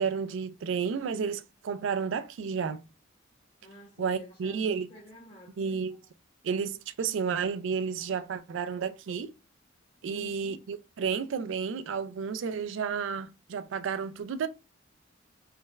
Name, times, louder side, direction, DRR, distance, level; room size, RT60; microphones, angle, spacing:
voice 1, 0.0-2.8 4.0-4.9 5.6-6.0 6.4-9.3 10.0-14.5, right 6 dB, 75° right, 0.3 m, -31 dB
voice 2, 3.6-6.0 10.0-10.6, equal, 40° left, 1.0 m, -50 dB
3.3 x 2.3 x 3.1 m
head